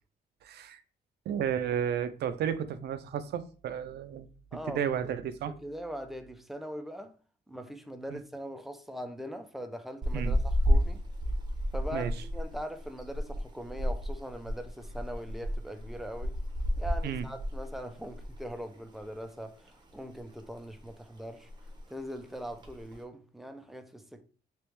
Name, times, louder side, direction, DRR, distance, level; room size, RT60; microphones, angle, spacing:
voice 1, 0.4-0.8 1.3-4.3 4.7-5.5 8.1-8.2 10.1-10.3 11.9-12.1 17.0-17.3, right 8 dB, 70° right, 0.4 m, -32 dB
voice 2, 4.5-4.9 5.5-7.2 7.5-11.0 11.7-16.4 16.8-21.5 21.9-24.2, equal, ahead, 0.3 m, -41 dB
sound 1, 10.0-18.5 18.8-19.0 19.4-20.2 20.6-20.9 21.2-21.3 21.5-21.9 22.5-23.0, equal, 25° right, 0.7 m, -32 dB
3.1 x 3.0 x 3.2 m
cardioid pair, 130°, 18 cm